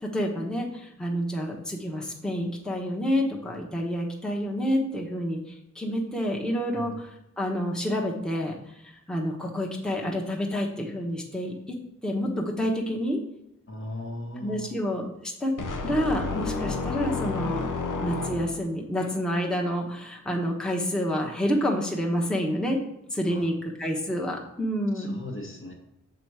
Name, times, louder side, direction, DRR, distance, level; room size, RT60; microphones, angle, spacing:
voice 1, 0.0-5.4 5.7-7.1 7.4-8.5 9.1-11.8 12.0-13.2 14.4-15.5 15.8-17.7 18.0-22.8 23.1-25.2, equal, ahead, -1 dB, 1.0 m, -28 dB
voice 2, 13.7-14.7 23.3-23.4 24.9-25.7, left 1 dB, 40° left, 1 dB, 1.2 m, -38 dB
sound 1, 15.6-18.8, left 3 dB, 80° left, 0.8 m, -31 dB
6.0 x 3.9 x 4.7 m, 0.82 s
cardioid pair, 60°, 31 cm